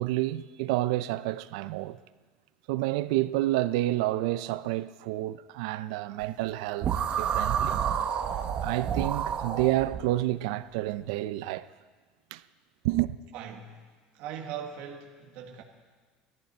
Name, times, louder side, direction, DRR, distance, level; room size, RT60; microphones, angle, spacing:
voice 1, 0.0-2.0 2.7-7.9 8.6-11.7 12.3-12.4 12.8-13.2, right 16 dB, 85° right, 0.5 m, -29 dB
sound 1, 6.8-10.0, right 8 dB, 35° right, 0.8 m, -29 dB
voice 2, 13.3-13.8 14.1-15.6, right 8 dB, 55° right, 1.6 m, -40 dB
18.0 x 14.0 x 4.3 m
cardioid pair, 170°, 3 cm